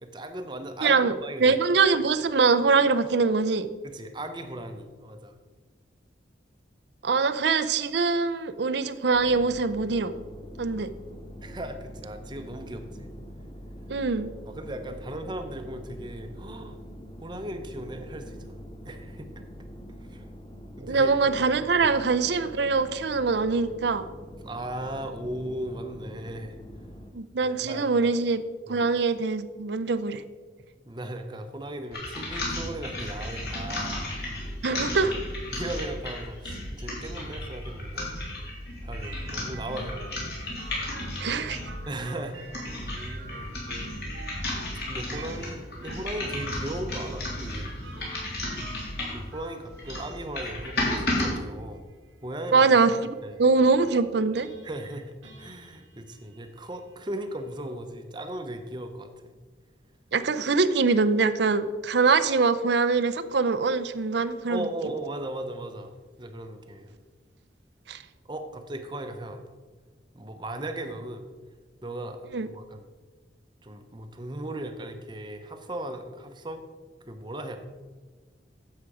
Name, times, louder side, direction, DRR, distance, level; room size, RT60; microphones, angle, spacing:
voice 1, 0.0-1.6 3.8-5.4 11.4-13.1 14.5-16.8 17.2-19.3 20.1-20.3 20.8-21.1 24.4-26.6 27.4-28.1 28.7-28.9 30.9-34.0 34.7-34.8 35.5-38.1 38.8-40.3 41.9-43.7 44.9-47.7 49.1-51.8 52.2-52.7 53.2-53.4 54.6-59.3 64.5-66.9 68.3-69.5 70.1-71.2 71.8-72.2 72.5-72.9 73.6-76.6 77.1-77.6, right 1 dB, 25° right, 6 dB, 0.8 m, -37 dB
voice 2, 0.8-3.7 7.0-10.1 10.6-10.9 13.9-14.3 20.8-24.0 27.1-28.4 28.7-30.2 34.6-35.1 41.2-41.6 52.5-53.0 53.4-54.5 60.1-64.7 67.9-68.0 72.3-72.5, right 4 dB, 65° right, 13 dB, 0.5 m, -23 dB
sound 1, 9.1-27.1, equal, 25° left, 0.7 m, -44 dB
sound 2, 31.9-41.8 42.3-49.3 49.7-51.3, left 1 dB, 55° left, 3.2 m, -33 dB
sound 3, 39.0-57.7, right 2 dB, 85° right, 1.2 m, -48 dB
10.0 x 7.4 x 4.9 m, 1.4 s
head